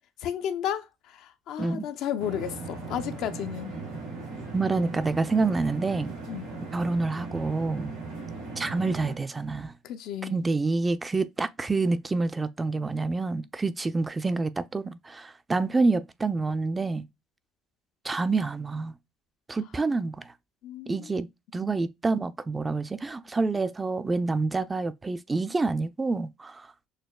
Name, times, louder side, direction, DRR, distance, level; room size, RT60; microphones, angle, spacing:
voice 1, 0.2-3.8 6.3-6.5 9.8-10.4 20.6-21.1, left 9 dB, 70° left, 0.5 m, -33 dB
sound 1, 2.2-9.2, right 3 dB, 85° right, 2.5 m, -38 dB
voice 2, 4.5-6.2 6.7-7.9 8.6-9.7 10.3-17.0 18.0-18.9 19.5-20.3 20.9-21.3 21.5-26.7, right 3 dB, 25° right, 0.4 m, -27 dB
6.4 x 2.3 x 2.2 m
hypercardioid pair, 70°, 0 cm